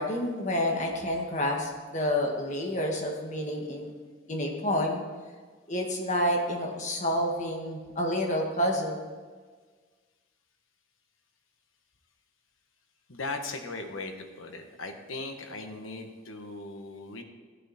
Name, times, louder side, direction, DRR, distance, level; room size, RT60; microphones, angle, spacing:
voice 1, 0.0-3.9 4.3-5.0 5.7-9.0, left 1 dB, 35° left, 0 dB, 1.8 m, -29 dB
voice 2, 13.1-17.2, left 3 dB, 85° left, 5 dB, 1.3 m, -38 dB
14.5 x 9.1 x 4.3 m, 1.5 s
head